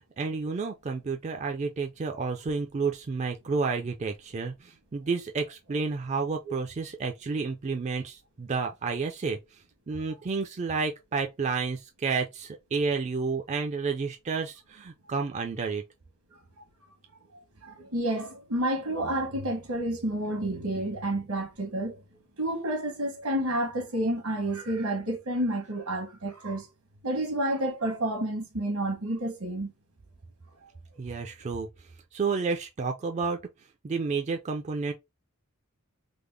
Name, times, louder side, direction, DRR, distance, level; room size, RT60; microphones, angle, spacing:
voice 1, 0.2-9.4 9.9-15.8 31.0-31.7 32.1-33.4 33.8-34.9, right 4 dB, 30° right, 0.3 m, -30 dB
voice 2, 17.6-21.9 22.4-26.7 27.0-29.7, right 1 dB, 85° right, 1.3 m, -30 dB
3.5 x 2.0 x 3.3 m
head